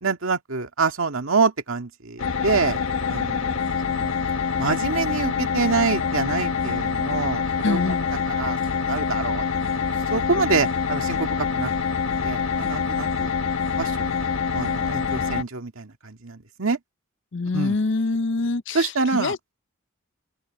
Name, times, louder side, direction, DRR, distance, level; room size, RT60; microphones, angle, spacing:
voice 1, 0.0-2.8 3.1-4.1 4.6-8.0 8.3-11.7 12.2-13.3 13.8-14.2 14.5-16.8 17.5-17.8 18.7-19.3, right 4 dB, 85° right, 1.9 m, -26 dB
sound 1, 2.2-15.4, left 5 dB, 85° left, 1.3 m, -25 dB
voice 2, 7.6-8.1 17.3-19.4, left 3 dB, 60° left, 0.6 m, -25 dB
open air
head